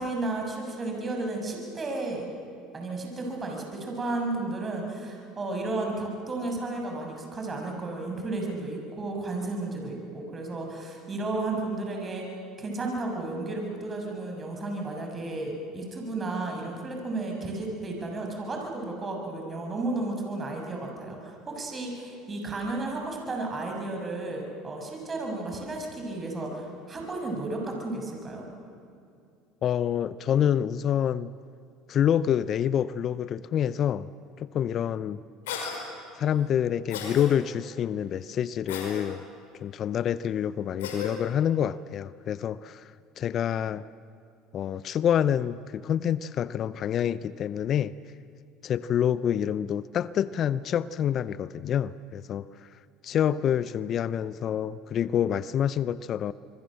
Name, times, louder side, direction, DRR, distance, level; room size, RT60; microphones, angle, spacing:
voice 1, 0.0-2.3 2.7-12.2 12.6-28.5, right 2 dB, 25° right, 1 dB, 6.9 m, -33 dB
voice 2, 29.6-31.3 31.9-34.1 34.4-35.2 36.2-39.2 39.6-43.8 44.5-47.9 48.6-52.7 53.0-56.3, left 9 dB, 45° left, 17 dB, 0.6 m, -27 dB
Cough, 35.5-35.8 36.9-37.3 38.7-39.0 40.8-41.1, left 7 dB, 85° left, 5.1 m, -34 dB
25.5 x 23.0 x 7.7 m, 2.5 s
hypercardioid pair, 85°, 0 cm